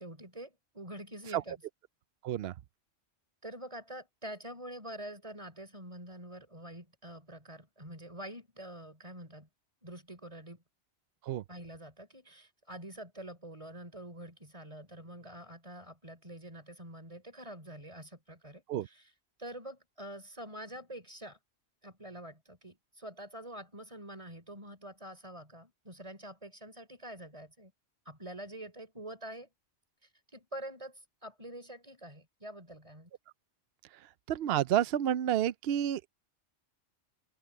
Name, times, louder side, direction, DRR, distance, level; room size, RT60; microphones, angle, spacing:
voice 1, 0.0-1.6 3.4-9.5 9.8-10.6 11.5-19.1 19.4-21.4 21.8-27.7 28.1-29.5 30.3-33.1, right 1 dB, 30° right, 4.1 m, -46 dB
voice 2, 34.3-36.0, right 11 dB, 65° right, 0.7 m, -29 dB
open air
omnidirectional pair, 1.1 m